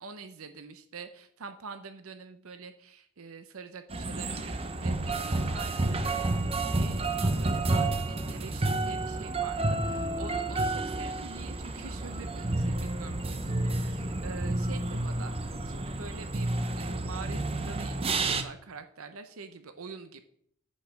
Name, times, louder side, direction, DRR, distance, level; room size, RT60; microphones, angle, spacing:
voice 1, 0.0-16.5 16.8-20.2, right 4 dB, 75° right, 9 dB, 0.7 m, -45 dB
sound 1, 3.9-18.4, right 2 dB, 25° right, 0.7 m, -30 dB
8.8 x 5.4 x 6.2 m, 0.66 s
head